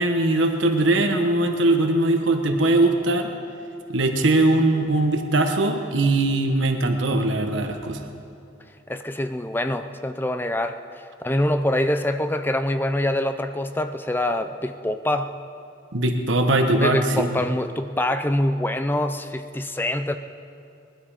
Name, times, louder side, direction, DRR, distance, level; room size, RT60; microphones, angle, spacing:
voice 1, 0.0-3.3 3.9-8.0 15.9-17.4, right 2 dB, 80° right, 5 dB, 1.3 m, -21 dB
voice 2, 8.9-15.4 16.8-20.2, left 1 dB, 10° left, 9 dB, 0.4 m, -25 dB
20.5 x 12.0 x 4.9 m, 2.5 s
head